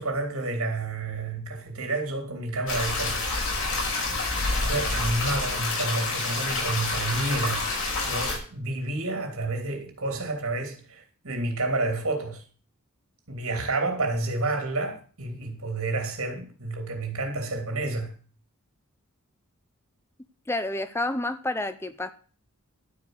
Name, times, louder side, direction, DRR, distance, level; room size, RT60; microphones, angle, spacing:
voice 1, 0.0-3.3 4.7-7.7 8.0-12.4 13.3-18.1, right 2 dB, 75° right, 3.0 m, -30 dB
sound 1, 2.7-8.4, left 2 dB, 70° left, 5.6 m, -28 dB
voice 2, 20.5-22.1, left 2 dB, 10° left, 0.5 m, -29 dB
12.0 x 5.1 x 8.0 m
head